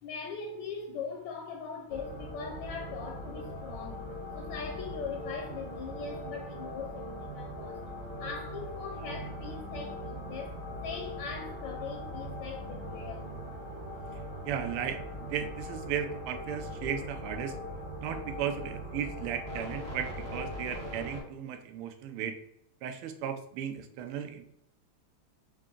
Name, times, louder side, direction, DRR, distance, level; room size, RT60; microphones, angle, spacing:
voice 1, 0.0-7.8 8.2-13.3, left 5 dB, 75° left, 1.2 m, -41 dB
sound 1, 1.9-21.2, equal, 25° right, 1.0 m, -40 dB
voice 2, 14.4-17.6 18.0-22.3 22.8-24.5, right 8 dB, 85° right, 1.5 m, -35 dB
4.6 x 2.5 x 3.7 m
omnidirectional pair, 2.4 m